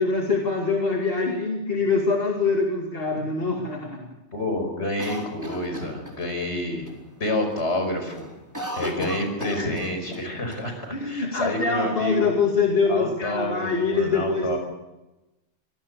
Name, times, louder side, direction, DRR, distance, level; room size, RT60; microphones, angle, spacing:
voice 1, 0.0-4.1 9.0-9.1 9.6-9.7 10.9-14.6, left 4 dB, 55° left, 1 dB, 2.7 m, -24 dB
voice 2, 4.3-6.9 7.2-8.3 8.8-12.3 12.9-14.6, left 1 dB, 75° left, 5 dB, 5.7 m, -28 dB
Cough, 5.0-6.5 6.9-7.0 7.3-7.7 8.0-10.2 10.5-10.6 11.3-12.1, right 1 dB, 15° right, 4.2 m, -35 dB
26.0 x 18.5 x 6.8 m, 1.0 s
omnidirectional pair, 1.2 m